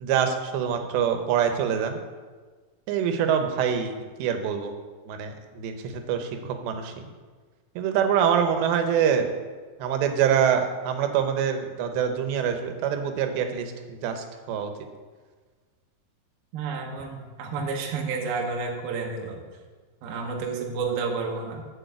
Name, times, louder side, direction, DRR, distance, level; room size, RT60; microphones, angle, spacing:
voice 1, 0.0-2.0 2.9-3.9 4.2-4.7 5.1-7.1 7.8-9.3 9.8-14.7, right 8 dB, 90° right, 6 dB, 3.1 m, -25 dB
voice 2, 16.5-19.4 20.0-21.7, right 4 dB, 70° right, 0 dB, 2.8 m, -30 dB
7.4 x 6.4 x 7.9 m, 1.4 s
omnidirectional pair, 4.9 m